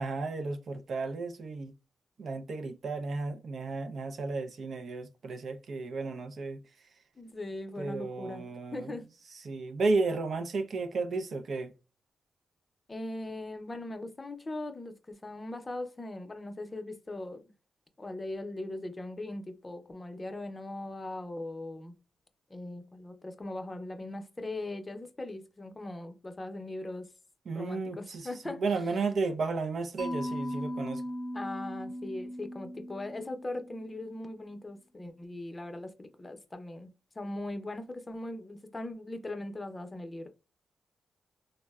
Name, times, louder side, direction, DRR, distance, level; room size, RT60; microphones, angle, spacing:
voice 1, 0.0-1.7 2.2-6.6 7.8-8.9 9.5-11.7 27.5-31.0, right 3 dB, 65° right, 0.4 m, -33 dB
voice 2, 7.2-9.1 12.9-17.5 18.0-21.9 22.5-27.1 27.5-28.8 31.3-36.9 37.2-40.3, left 2 dB, 25° left, 0.6 m, -40 dB
Mallet percussion, 30.0-34.0, equal, 35° right, 0.7 m, -38 dB
3.5 x 2.0 x 2.2 m
cardioid pair, 80°, 0 cm